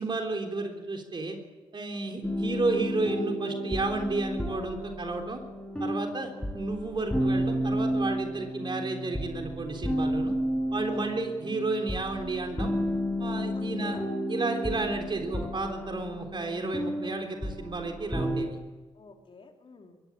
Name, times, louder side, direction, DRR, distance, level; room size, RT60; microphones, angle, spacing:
voice 1, 0.0-1.4 1.7-5.4 5.8-10.4 10.7-12.7 13.2-14.0 14.3-18.6, right 3 dB, 45° right, 3 dB, 3.7 m, -32 dB
sound 1, 2.2-18.4, equal, 10° left, 6.2 m, -32 dB
voice 2, 10.9-11.2 13.5-14.1 18.9-20.0, left 4 dB, 50° left, 3 dB, 3.7 m, -50 dB
22.0 x 15.5 x 8.8 m, 1.3 s
supercardioid pair, 55°, 12 cm